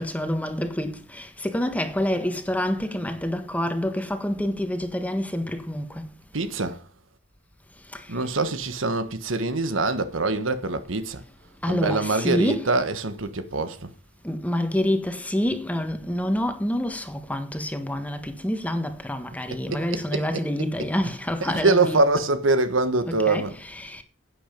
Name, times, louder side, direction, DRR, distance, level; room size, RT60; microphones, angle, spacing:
voice 1, 0.0-6.0 7.9-8.0 11.6-12.7 14.2-22.0 23.1-24.0, left 1 dB, 10° left, 1.5 m, -27 dB
voice 2, 6.3-6.8 8.1-11.2 11.7-13.9 19.5-20.3 20.8-20.9 21.4-23.6, right 3 dB, 80° right, 1.3 m, -24 dB
11.0 x 9.0 x 5.3 m
head